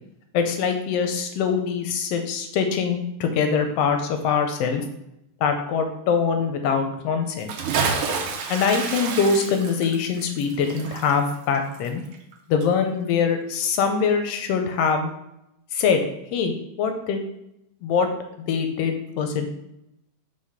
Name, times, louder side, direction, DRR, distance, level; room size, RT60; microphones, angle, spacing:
voice 1, 0.3-4.9 5.4-7.5 8.5-12.0 12.5-15.1 15.7-16.0 16.3-16.5 16.8-17.2 17.8-18.1 18.5-19.5, left 6 dB, 75° left, 6 dB, 1.5 m, -23 dB
Bathtub (filling or washing) / Splash splatter, 7.4-12.3 12.6-12.7, right 5 dB, 80° right, 1.2 m, -29 dB
4.9 x 3.6 x 5.6 m, 0.84 s
omnidirectional pair, 3.3 m